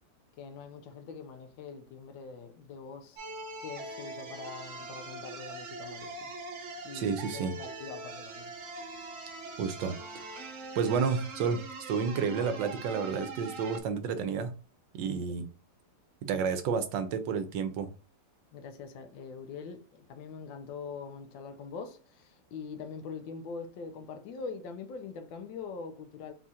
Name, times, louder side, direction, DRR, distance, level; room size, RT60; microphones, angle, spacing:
voice 1, 0.4-3.2 3.6-6.3 6.8-8.6 15.0-15.3 18.5-26.3, left 5 dB, 80° left, 1.4 m, -43 dB
sound 1, 3.2-13.8, right 2 dB, 55° right, 0.9 m, -42 dB
voice 2, 6.9-7.6 9.6-10.4 10.7-14.5 14.9-15.5 16.2-17.9, right 6 dB, 75° right, 1.3 m, -31 dB
4.2 x 2.4 x 4.1 m
omnidirectional pair, 2.0 m